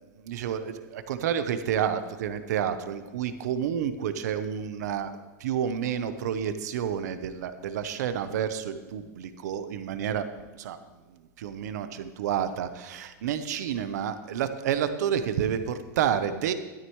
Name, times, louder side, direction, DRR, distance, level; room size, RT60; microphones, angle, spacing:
voice 1, 0.2-5.1 5.4-10.2 10.6-10.8 11.4-16.5, right 8 dB, 75° right, 10 dB, 0.8 m, -29 dB
13.0 x 13.0 x 3.1 m, 1.2 s
supercardioid pair, 175°, 9 cm